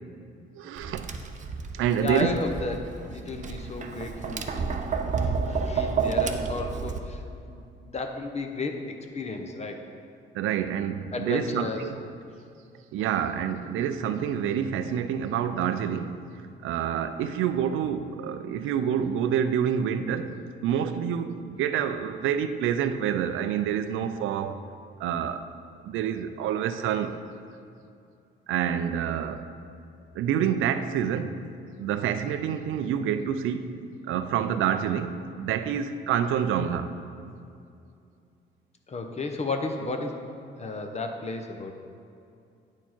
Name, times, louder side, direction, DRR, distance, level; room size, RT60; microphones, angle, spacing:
voice 1, 0.5-1.1 1.7-2.4 10.3-12.0 12.9-16.2 16.6-24.6 25.0-25.4 25.8-27.2 28.5-29.5 30.1-31.4 31.8-36.9, right 8 dB, 85° right, 0.5 m, -27 dB
Tap, 0.8-7.0, right 5 dB, 40° right, 0.6 m, -30 dB
voice 2, 2.0-4.8 5.2-7.2 7.5-9.8 11.1-11.9 13.0-13.1 38.9-40.2 40.6-41.7, left 3 dB, 35° left, 0.8 m, -33 dB
9.5 x 4.5 x 4.4 m
cardioid pair, 90°, 20 cm